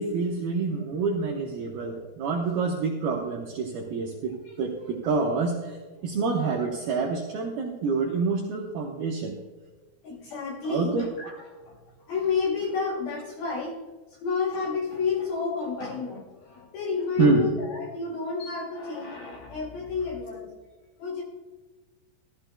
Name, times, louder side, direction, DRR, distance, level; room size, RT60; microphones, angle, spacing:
voice 1, 0.0-5.8 6.0-9.3 10.6-11.1 17.2-17.5, right 4 dB, 80° right, -1 dB, 2.2 m, -27 dB
voice 2, 4.4-4.9 6.0-6.1 10.0-20.5 21.0-21.2, left 5 dB, 70° left, -1 dB, 2.3 m, -31 dB
15.5 x 13.5 x 2.3 m, 1.3 s
omnidirectional pair, 5.8 m